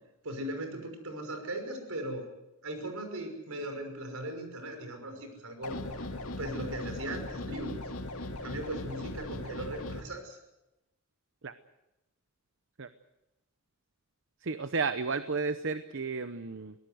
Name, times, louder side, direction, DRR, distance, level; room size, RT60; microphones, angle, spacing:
voice 1, 0.2-2.3 2.6-6.1 6.4-7.7 8.4-10.4, right 1 dB, 75° right, 5 dB, 5.8 m, -38 dB
sound 1, 5.6-10.0, left 1 dB, 80° left, 2.4 m, -38 dB
voice 2, 14.4-16.7, right 4 dB, 60° right, 11 dB, 0.8 m, -32 dB
24.0 x 18.0 x 8.0 m, 0.95 s
head